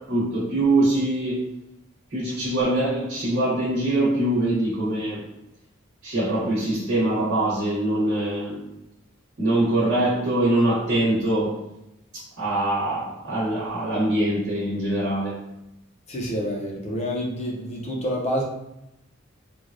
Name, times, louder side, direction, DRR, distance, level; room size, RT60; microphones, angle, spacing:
voice 1, 0.1-1.4 2.1-5.2 6.0-8.6 9.4-11.6 12.1-15.4, right 1 dB, 55° right, -7 dB, 1.1 m, -23 dB
voice 2, 16.1-18.4, equal, 30° left, -2 dB, 0.6 m, -28 dB
3.1 x 2.3 x 2.5 m, 0.88 s
head